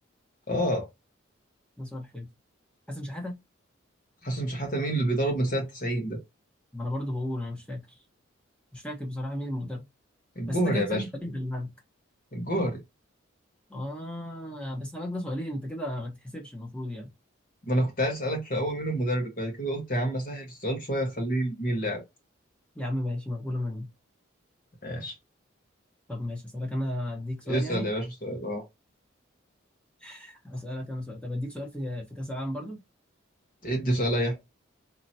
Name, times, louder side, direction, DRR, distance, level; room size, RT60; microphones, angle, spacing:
voice 1, 0.5-0.9 4.2-6.2 10.3-11.0 12.3-12.8 17.6-22.0 24.8-25.1 27.5-28.6 33.6-34.4, right 1 dB, 40° left, 1.3 m, -28 dB
voice 2, 1.8-2.3 2.9-3.4 6.7-8.0 8.7-9.9 10.5-11.7 13.7-17.1 22.7-23.9 26.1-27.9 30.0-32.8, left 1 dB, 5° left, 1.0 m, -34 dB
4.3 x 2.9 x 2.8 m
head